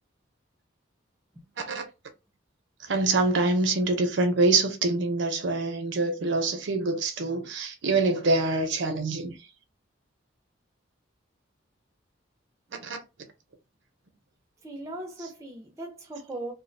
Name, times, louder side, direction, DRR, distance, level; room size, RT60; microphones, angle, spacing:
voice 1, 2.9-9.4 12.8-13.0, right 3 dB, 65° right, 0.6 m, -25 dB
voice 2, 14.6-16.5, right 1 dB, 15° right, 0.4 m, -38 dB
2.3 x 2.1 x 2.6 m
head